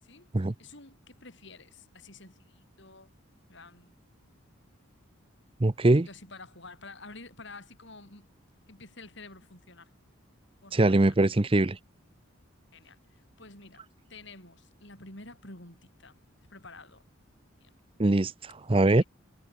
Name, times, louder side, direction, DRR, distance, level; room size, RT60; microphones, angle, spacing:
voice 1, 0.0-3.1 3.5-4.0 5.8-8.3 8.7-9.9 10.6-11.2 12.7-16.2 16.5-17.0 17.6-17.7 18.9-19.1, left 3 dB, 55° left, 6.6 m, -50 dB
voice 2, 5.6-6.1 10.7-11.8 18.0-19.0, right 2 dB, 25° right, 0.6 m, -22 dB
head